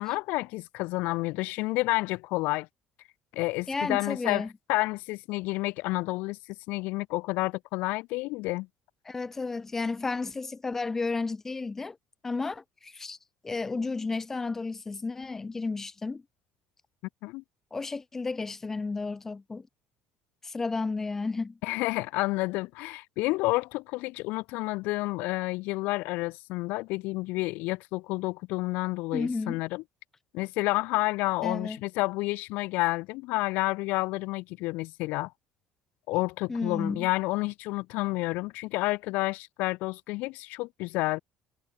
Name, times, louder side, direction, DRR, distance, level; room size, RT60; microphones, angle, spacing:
voice 1, 0.0-2.7 3.3-6.4 6.7-8.7 17.2-17.4 21.6-29.8 30.3-35.3 36.1-41.2, left 22 dB, 70° left, 6.0 m, -30 dB
voice 2, 3.7-4.5 9.0-12.0 12.2-13.2 13.4-16.2 17.7-19.7 20.4-21.6 29.1-29.6 31.4-31.8 36.5-37.1, left 3 dB, 15° left, 6.5 m, -32 dB
cardioid pair, 180°, 3 cm